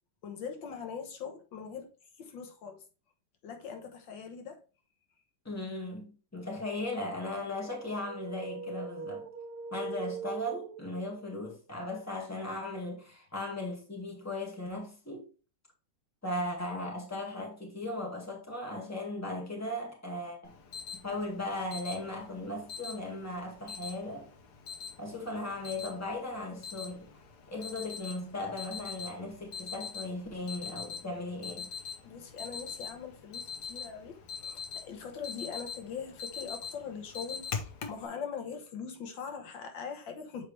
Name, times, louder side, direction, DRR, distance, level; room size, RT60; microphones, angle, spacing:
voice 1, 0.2-1.9 2.2-2.8 3.4-4.6 32.0-40.5, left 6 dB, 80° left, 1.8 m, -42 dB
voice 2, 5.5-9.3 9.7-15.3 16.2-20.5 21.0-24.3 25.0-27.1 27.5-31.7, left 2 dB, 10° left, 1.8 m, -37 dB
sound 1, 7.6-11.2, right 5 dB, 70° right, 1.3 m, -40 dB
Alarm, 20.4-38.1, left 6 dB, 65° left, 1.4 m, -43 dB
7.5 x 4.7 x 3.2 m
omnidirectional pair, 2.0 m